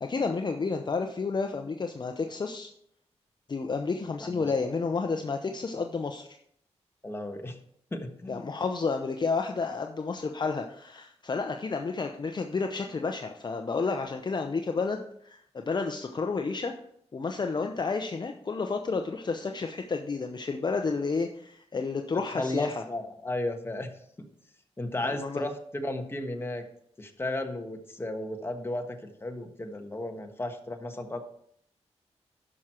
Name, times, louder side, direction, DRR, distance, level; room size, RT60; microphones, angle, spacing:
voice 1, 0.0-2.7 3.5-6.4 8.3-16.7 17.1-22.8 25.0-25.4, left 4 dB, 40° left, 4 dB, 0.7 m, -31 dB
voice 2, 4.2-4.5 7.0-7.5 7.9-8.5 22.4-23.9 24.8-26.6 27.0-31.2, left 1 dB, 20° left, 4 dB, 1.3 m, -34 dB
11.0 x 6.2 x 4.4 m, 0.68 s
cardioid pair, 80°, 11 cm